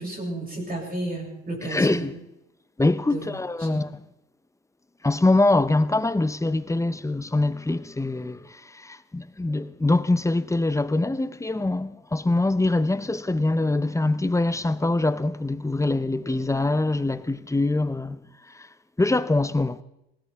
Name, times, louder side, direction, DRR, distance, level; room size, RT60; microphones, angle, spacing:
voice 1, 0.0-2.1 3.1-3.3 3.6-3.8, right 1 dB, 30° right, 7.4 m, -32 dB
voice 2, 1.6-2.1 2.8-3.9 5.0-8.4 8.8-18.2 19.0-19.8, left 2 dB, 10° left, 0.7 m, -23 dB
19.5 x 17.5 x 3.6 m
cardioid pair, 90°, 30 cm